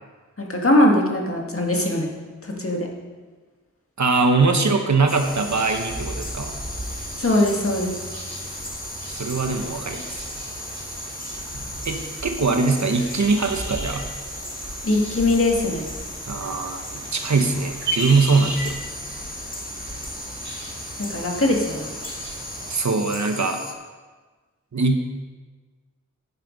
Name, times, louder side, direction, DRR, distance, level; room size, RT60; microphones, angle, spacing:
voice 1, 0.4-2.1 2.4-2.9 7.2-7.9 14.8-15.9 21.0-21.9, left 1 dB, 45° left, 0 dB, 2.1 m, -21 dB
voice 2, 4.0-6.6 9.1-10.2 11.8-14.1 16.3-18.8 22.7-23.6 24.7-25.0, right 3 dB, 70° right, 5 dB, 1.1 m, -22 dB
sound 1, 5.1-23.7, left 1 dB, 30° left, 1.4 m, -37 dB
sound 2, 5.2-22.8, right 1 dB, 40° right, 3.7 m, -35 dB
11.0 x 9.2 x 5.3 m, 1.4 s
wide cardioid pair, 70°, 30 cm